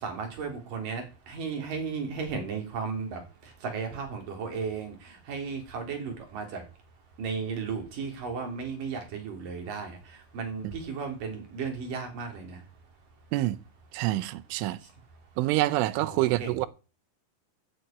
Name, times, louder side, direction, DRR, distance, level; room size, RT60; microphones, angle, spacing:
voice 1, 0.0-3.2 3.6-6.6 7.2-10.0 10.3-12.6 16.0-16.6, right 5 dB, 45° right, 5.0 m, -35 dB
voice 2, 13.9-14.8 15.4-16.7, right 17 dB, 85° right, 3.3 m, -26 dB
10.5 x 8.6 x 9.3 m
omnidirectional pair, 5.4 m